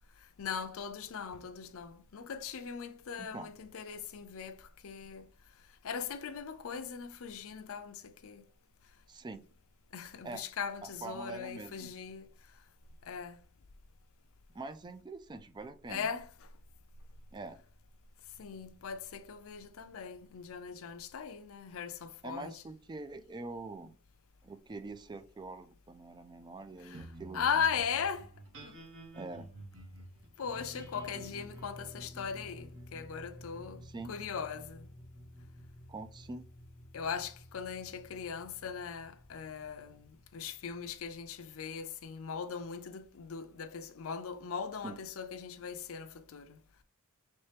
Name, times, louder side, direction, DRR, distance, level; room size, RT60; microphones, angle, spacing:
voice 1, 0.4-5.3 5.8-8.4 9.9-12.3 13.1-13.4 15.9-16.3 18.4-22.6 26.8-27.1 27.3-28.3 28.6-28.7 30.4-34.9 36.9-46.6, left 6 dB, 65° left, 0.5 m, -39 dB
voice 2, 3.2-3.5 9.1-9.4 10.2-10.4 11.0-11.9 14.5-16.1 17.3-17.6 22.2-24.0 24.4-27.4 29.1-29.5 33.8-34.1 35.9-36.4 44.8-45.0, right 3 dB, 20° right, 0.3 m, -44 dB
sound 1, 26.9-41.6, equal, 60° right, 1.7 m, -51 dB
4.3 x 3.2 x 3.3 m
head